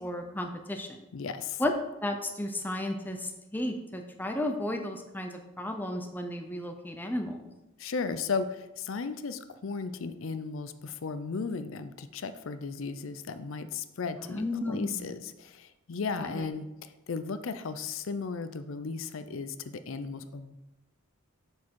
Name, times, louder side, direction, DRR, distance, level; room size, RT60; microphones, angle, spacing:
voice 1, 0.0-1.0 1.6-1.7 2.0-7.4 14.2-15.1 16.3-16.5, left 1 dB, 10° left, 4 dB, 0.6 m, -33 dB
voice 2, 1.1-1.6 7.8-20.6, left 5 dB, 65° left, 11 dB, 0.5 m, -35 dB
7.2 x 6.3 x 4.6 m, 0.98 s
head